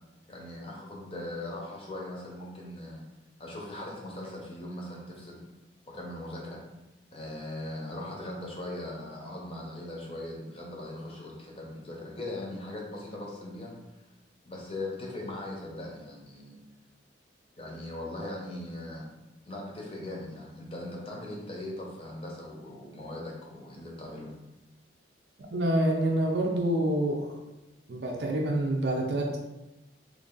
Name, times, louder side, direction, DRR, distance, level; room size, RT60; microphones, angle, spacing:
voice 1, 0.3-3.0 3.4-5.4 5.9-6.6 7.1-13.7 14.4-16.6 17.6-19.1 19.4-24.3, left 1 dB, 30° left, -2 dB, 0.7 m, -39 dB
voice 2, 25.5-27.4 27.9-29.4, right 1 dB, 60° right, 0 dB, 0.5 m, -27 dB
3.1 x 2.5 x 3.7 m, 1.0 s
head